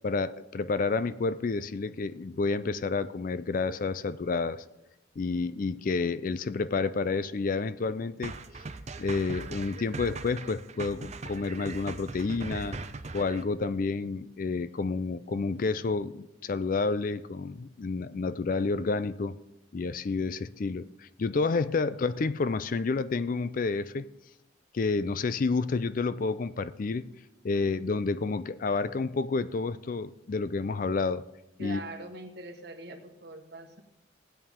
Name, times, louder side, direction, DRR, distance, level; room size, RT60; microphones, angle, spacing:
voice 1, 0.0-4.6 5.2-8.4 9.0-12.8 13.1-19.4 19.7-24.1 24.7-27.0 27.4-31.2 31.6-31.8, left 4 dB, 45° left, 0.4 m, -30 dB
sound 1, 8.2-13.4, right 3 dB, 35° right, 0.6 m, -40 dB
voice 2, 31.6-33.8, right 2 dB, 60° right, 1.4 m, -43 dB
16.5 x 8.8 x 3.7 m
head